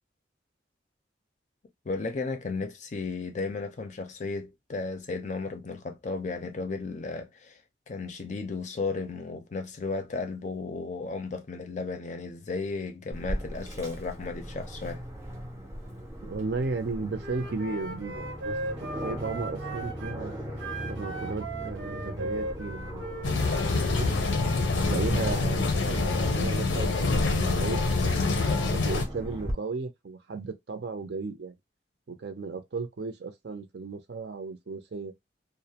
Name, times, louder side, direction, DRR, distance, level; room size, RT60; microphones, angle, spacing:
voice 1, 1.8-7.6 7.9-15.0, left 3 dB, 40° left, 0.5 m, -34 dB
Aircraft, 13.1-29.5, equal, 15° right, 0.5 m, -38 dB
voice 2, 16.2-18.6 19.0-20.4 20.9-23.0 23.6-24.1 24.7-28.3 28.7-31.5 32.1-35.1, right 4 dB, 65° right, 0.5 m, -35 dB
Wind instrument woodwind instrument, 17.2-20.2 20.6-24.0, right 2 dB, 85° right, 0.8 m, -38 dB
sound 1, 23.2-29.1, left 3 dB, 85° left, 0.6 m, -26 dB
2.4 x 2.0 x 2.8 m
head